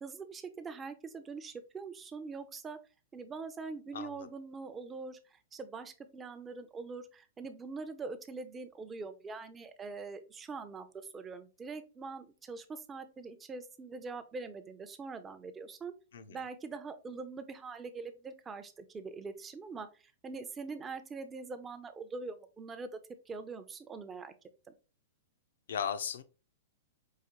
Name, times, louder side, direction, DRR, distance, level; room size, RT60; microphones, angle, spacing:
voice 1, 0.0-2.8 3.1-15.9 16.3-22.9 23.3-24.3, right 4 dB, 15° right, 10 dB, 0.4 m, -43 dB
voice 2, 3.9-4.3 16.1-16.4 25.7-26.2, left 8 dB, 80° left, 11 dB, 0.5 m, -37 dB
4.7 x 2.4 x 2.9 m, 0.33 s
hypercardioid pair, 145°, 0 cm